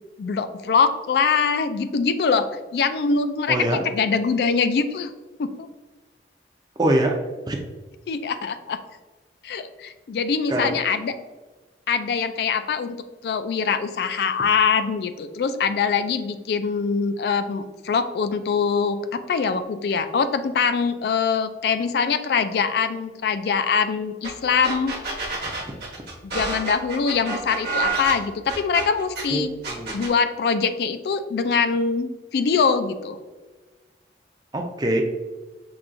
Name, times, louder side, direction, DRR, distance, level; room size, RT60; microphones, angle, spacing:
voice 1, 0.2-2.5 2.7-3.6 3.8-5.1 5.4-5.7 8.1-8.8 9.4-11.1 11.9-13.0 13.2-24.9 26.2-29.5 29.9-33.2, left 5 dB, 60° left, 10 dB, 0.3 m, -23 dB
voice 2, 3.5-3.8 6.8-7.2 7.5-7.6 10.5-10.8 25.4-25.5 29.3-29.9 34.5-35.0, right 1 dB, 25° right, 3 dB, 0.4 m, -23 dB
sound 1, 24.2-24.3 24.6-29.2 29.6-30.1, right 4 dB, 60° right, 1.1 m, -29 dB
5.8 x 2.3 x 2.5 m, 1.2 s
head